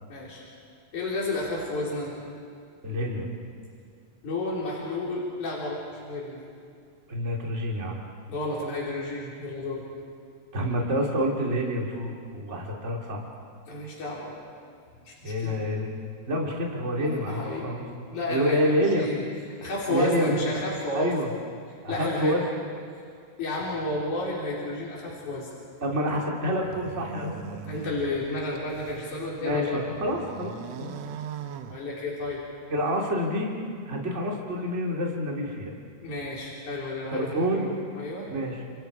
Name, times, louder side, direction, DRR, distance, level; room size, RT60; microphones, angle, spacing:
voice 1, 0.1-0.4 0.9-2.2 4.2-6.4 8.3-9.8 13.7-14.4 15.0-15.6 17.0-17.8 18.1-19.2 19.6-21.1 21.9-22.4 23.4-25.5 27.7-29.8 31.6-32.4 36.0-38.3, left 2 dB, 85° left, -5 dB, 5.5 m, -31 dB
voice 2, 2.8-3.3 7.1-8.0 10.5-13.2 15.2-16.0 16.3-17.9 18.3-19.1 19.9-20.3 20.9-21.3 21.8-22.4 25.8-27.6 29.4-31.0 32.7-33.5 33.9-35.7 37.1-37.7 38.3-38.6, equal, 25° right, -1 dB, 3.0 m, -28 dB
sound 1, 26.4-29.1 29.6-32.4, right 9 dB, 70° right, 2.0 m, -41 dB
29.5 x 29.0 x 4.9 m, 2.4 s
omnidirectional pair, 3.4 m